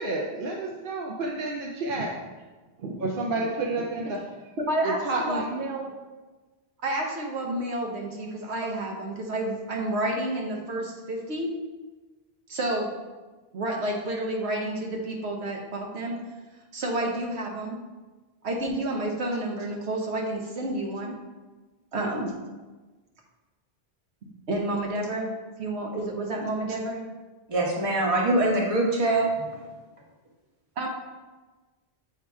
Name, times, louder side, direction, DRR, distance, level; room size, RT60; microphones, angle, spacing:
voice 1, 0.0-2.1 2.8-4.2 5.0-5.4, right 2 dB, 60° right, -1 dB, 0.8 m, -30 dB
voice 2, 4.6-6.0 6.8-11.5 12.5-12.9 13.5-16.2 16.7-17.8 18.4-21.1 21.9-22.3 24.5-25.3 25.6-27.0 30.8-30.9, right 1 dB, 85° right, 0 dB, 1.2 m, -30 dB
voice 3, 27.5-29.6, right 2 dB, 35° right, -2 dB, 1.1 m, -24 dB
7.3 x 2.8 x 4.7 m, 1.3 s
omnidirectional pair, 1.1 m